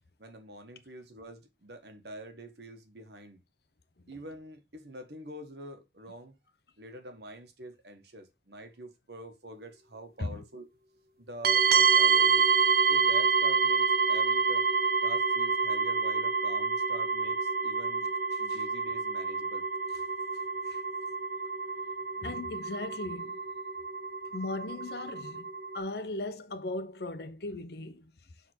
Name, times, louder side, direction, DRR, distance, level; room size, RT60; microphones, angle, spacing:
voice 1, 0.2-3.4 4.1-6.4 6.8-10.7 11.2-12.5 12.9-14.7 15.0-18.1 18.4-19.7, right 1 dB, 70° right, 1.4 m, -46 dB
sound 1, 11.4-25.8, right 5 dB, 55° right, 0.6 m, -27 dB
voice 2, 22.2-23.4 24.3-25.5 25.7-28.1, left 2 dB, 65° left, 0.8 m, -38 dB
6.6 x 3.8 x 4.4 m
head